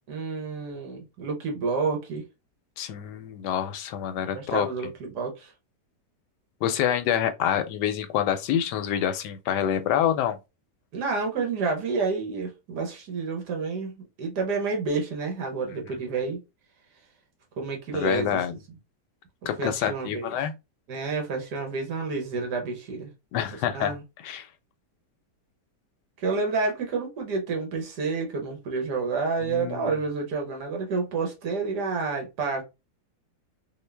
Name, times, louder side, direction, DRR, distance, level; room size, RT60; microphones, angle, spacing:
voice 1, 0.1-2.3 4.4-5.5 10.9-16.4 17.6-18.4 19.6-20.3 20.9-23.1 23.5-24.0 26.2-32.6, right 4 dB, 70° right, 1.6 m, -29 dB
voice 2, 2.8-4.7 6.6-10.4 17.9-18.5 19.5-20.5 23.3-24.0 24.2-24.5 29.4-30.0, left 10 dB, 80° left, 1.2 m, -27 dB
3.7 x 2.4 x 3.3 m
omnidirectional pair, 1.8 m